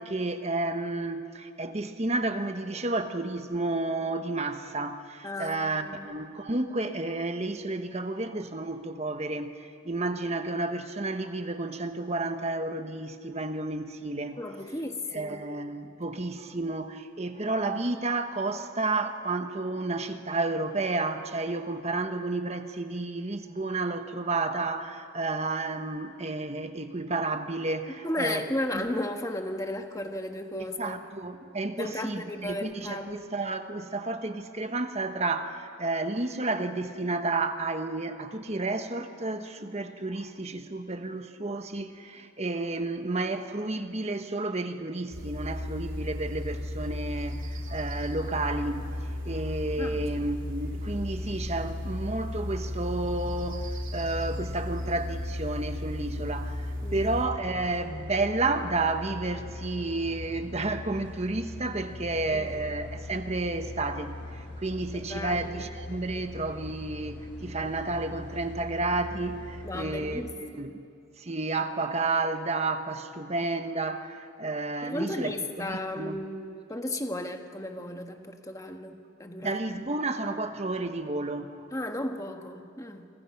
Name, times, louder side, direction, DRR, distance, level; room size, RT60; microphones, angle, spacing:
voice 1, 0.0-14.4 15.1-28.5 28.7-28.9 30.8-48.9 49.2-70.3 70.6-70.7 71.2-76.2 79.4-81.7, right 2 dB, 30° right, 8 dB, 1.2 m, -31 dB
voice 2, 5.2-6.1 14.4-15.4 28.0-31.0 31.8-33.5 49.8-50.3 56.8-57.1 62.3-62.5 64.9-65.7 69.6-70.6 74.8-79.6 81.7-83.1, left 1 dB, 15° left, 5 dB, 1.5 m, -35 dB
sound 1, 45.1-57.3, left 1 dB, 65° right, 3.3 m, -34 dB
sound 2, 57.0-70.2, left 2 dB, 60° left, 6.5 m, -41 dB
28.5 x 25.0 x 5.9 m, 2.6 s
head